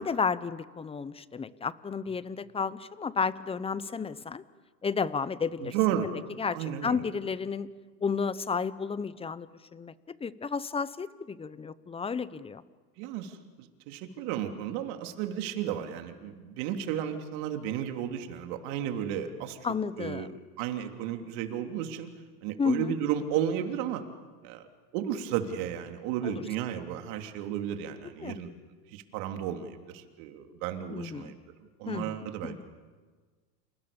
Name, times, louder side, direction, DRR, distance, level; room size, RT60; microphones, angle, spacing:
voice 1, 0.0-4.4 4.8-5.7 6.0-7.7 8.0-12.6 19.6-20.3 22.6-22.9 26.2-26.4 28.2-28.4 30.9-31.3 31.9-32.6, left 5 dB, 10° left, 17 dB, 0.8 m, -32 dB
voice 2, 5.6-6.1 6.5-7.0 13.0-19.6 20.0-20.3 20.6-22.1 22.4-24.0 24.4-24.7 24.9-28.5 28.9-31.3 31.8-32.6, right 10 dB, 55° right, 6 dB, 3.3 m, -33 dB
29.5 x 27.5 x 7.1 m, 1.4 s
hypercardioid pair, 115°, 49 cm